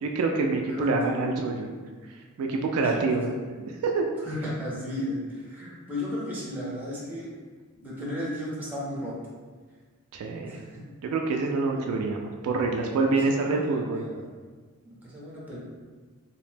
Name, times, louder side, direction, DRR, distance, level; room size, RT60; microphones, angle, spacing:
voice 1, 0.0-1.8 2.4-3.3 3.6-4.1 10.1-10.6 11.0-14.0, right 3 dB, 70° right, 2 dB, 0.3 m, -26 dB
voice 2, 0.7-1.4 2.7-3.2 4.2-7.3 7.7-9.2 10.5-10.6 11.8-12.0 12.9-14.2 14.8-15.6, left 1 dB, 10° right, -6 dB, 0.6 m, -34 dB
2.8 x 2.1 x 3.2 m, 1.4 s
head